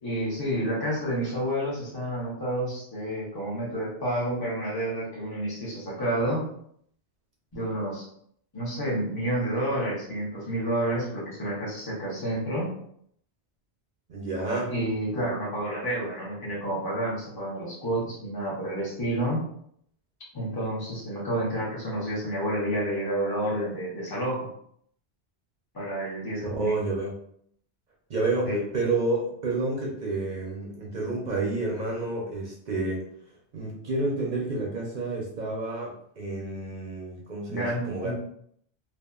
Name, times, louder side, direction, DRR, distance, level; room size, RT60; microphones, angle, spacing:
voice 1, 0.0-6.4 7.5-8.0 8.5-12.7 14.7-19.5 20.3-24.5 25.7-26.7 28.5-28.6 37.5-38.1, right 1 dB, 20° left, -6 dB, 0.9 m, -29 dB
voice 2, 14.1-14.7 26.4-27.2 28.1-33.0 33.5-38.1, right 2 dB, 55° right, -2 dB, 0.6 m, -29 dB
2.7 x 2.3 x 2.3 m, 0.67 s
omnidirectional pair, 1.1 m